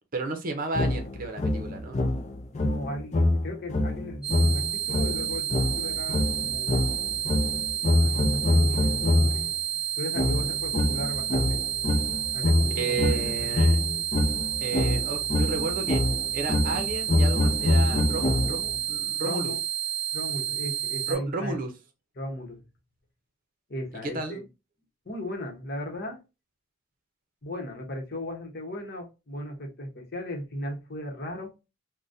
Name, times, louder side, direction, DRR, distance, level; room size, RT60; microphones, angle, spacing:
voice 1, 0.1-2.0 12.8-13.8 14.6-16.0 16.3-19.5 21.1-21.7 24.0-24.4, right 3 dB, 45° right, 0.7 m, -32 dB
sound 1, 0.7-9.5 10.2-18.8, left 2 dB, 35° left, 0.5 m, -25 dB
voice 2, 2.6-6.8 8.0-9.5 10.0-11.6 12.3-13.6 19.2-19.6 20.1-21.6 22.2-22.6 23.7-24.4 25.1-26.2 27.4-31.5, left 1 dB, 50° left, 0.9 m, -36 dB
sound 2, 4.2-21.1, right 9 dB, 5° right, 0.9 m, -30 dB
3.9 x 2.2 x 2.5 m
head